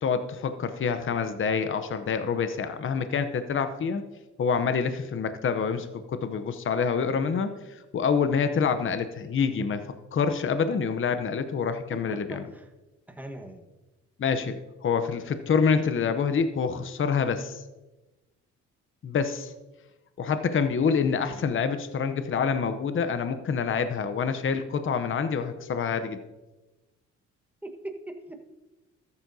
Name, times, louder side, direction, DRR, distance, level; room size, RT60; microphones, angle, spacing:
voice 1, 0.0-4.0 4.4-9.8 10.1-12.4 14.2-17.6 19.0-19.5 20.2-26.2, left 6 dB, 40° left, 9 dB, 0.8 m, -27 dB
voice 2, 11.9-12.7 13.1-13.7 27.6-28.5, right 1 dB, 5° right, 4 dB, 1.4 m, -40 dB
13.5 x 9.7 x 2.8 m, 1.1 s
cardioid pair, 90°, 30 cm